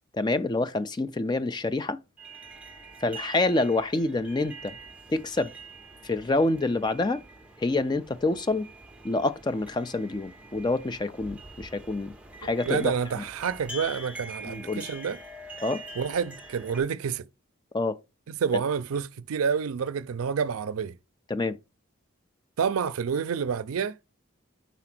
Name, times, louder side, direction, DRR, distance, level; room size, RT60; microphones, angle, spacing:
voice 1, 0.1-2.0 3.0-4.7 5.1-5.5 6.0-7.2 7.6-8.7 9.0-12.1 12.4-12.9 13.2-13.3 14.4-14.8 15.6-15.8 17.7-18.0 18.5-18.6 21.3-21.6, left 2 dB, 20° left, 0.3 m, -27 dB
sound 1, 2.2-16.8, right 1 dB, 5° right, 0.7 m, -45 dB
voice 2, 12.6-15.2 16.0-17.2 18.3-20.9 22.6-23.9, right 6 dB, 90° right, 0.4 m, -28 dB
4.9 x 4.1 x 5.8 m
head